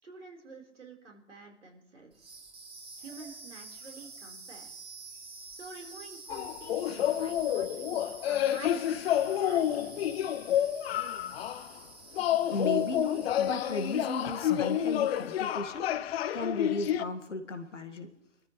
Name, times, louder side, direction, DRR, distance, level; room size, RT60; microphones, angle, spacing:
voice 1, 0.0-2.3 3.0-4.7 5.5-10.3, right 3 dB, 80° right, 0 dB, 4.3 m, -49 dB
sound 1, 2.1-15.7, right 4 dB, 15° right, 3.2 m, -49 dB
sound 2, 6.3-11.7 12.2-17.0, left 11 dB, 60° left, 0.8 m, -29 dB
voice 2, 12.5-18.1, left 2 dB, 85° left, 7 dB, 2.0 m, -35 dB
25.0 x 13.5 x 3.2 m, 0.78 s
figure-of-eight pair, 100°, 36 cm